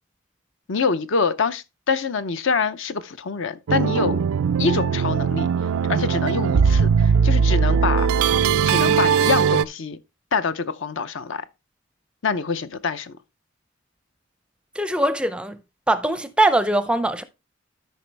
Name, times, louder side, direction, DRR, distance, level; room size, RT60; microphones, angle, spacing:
voice 1, 0.7-4.2 4.6-5.5 5.9-8.1 8.6-10.0 10.3-11.4 12.2-13.1, left 5 dB, 60° left, 0.6 m, -25 dB
sound 1, 3.7-9.6, right 6 dB, 85° right, 0.4 m, -19 dB
voice 2, 14.8-15.6 15.9-17.2, right 1 dB, 5° right, 0.5 m, -21 dB
12.5 x 5.3 x 3.4 m
head